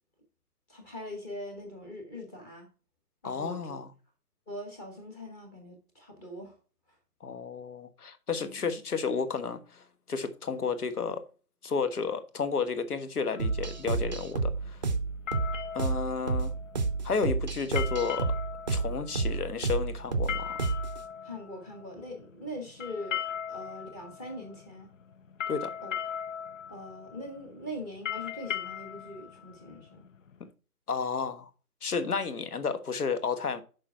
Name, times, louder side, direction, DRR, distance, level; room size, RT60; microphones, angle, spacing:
voice 1, 0.7-2.7 3.2-3.8 4.5-6.5 8.4-8.7 21.2-23.2 23.5-24.9 25.8-25.9 26.7-30.0, left 1 dB, 10° left, 0.9 m, -42 dB
voice 2, 3.2-3.9 7.2-11.2 11.6-14.8 15.7-16.5 17.0-18.3 18.7-20.7 25.5-25.7 30.9-31.5 31.8-33.6, left 5 dB, 70° left, 1.3 m, -32 dB
sound 1, 13.3-30.5, left 8 dB, 55° left, 0.6 m, -39 dB
sound 2, 13.4-21.0, right 4 dB, 30° right, 0.6 m, -30 dB
6.8 x 5.2 x 4.3 m
figure-of-eight pair, 140°, 47 cm